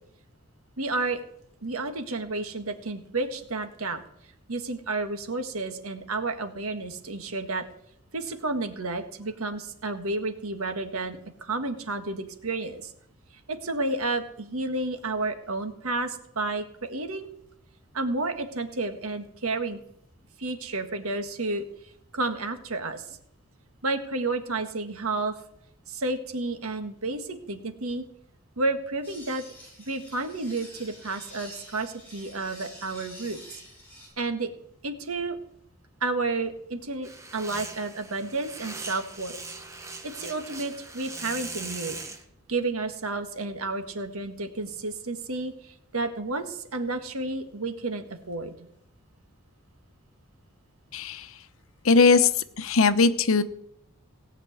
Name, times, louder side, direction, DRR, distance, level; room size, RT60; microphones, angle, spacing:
voice 1, 0.8-1.2 1.6-4.0 4.5-7.6 8.1-12.9 13.5-17.3 17.9-19.8 20.4-21.6 22.1-23.2 23.8-25.3 25.9-28.0 28.6-29.4 29.9-33.4 34.2-34.5 34.8-35.3 36.0-39.4 40.0-42.0 42.5-48.5, right 3 dB, 85° right, 8 dB, 1.6 m, -31 dB
sound 1, 29.0-34.1, equal, 10° left, 7.5 m, -48 dB
sound 2, 37.0-42.2, right 3 dB, 15° right, 1.2 m, -40 dB
voice 2, 50.9-51.3 51.8-52.3 52.6-53.4, left 4 dB, 75° left, 12 dB, 0.9 m, -19 dB
18.0 x 6.0 x 9.2 m, 0.73 s
head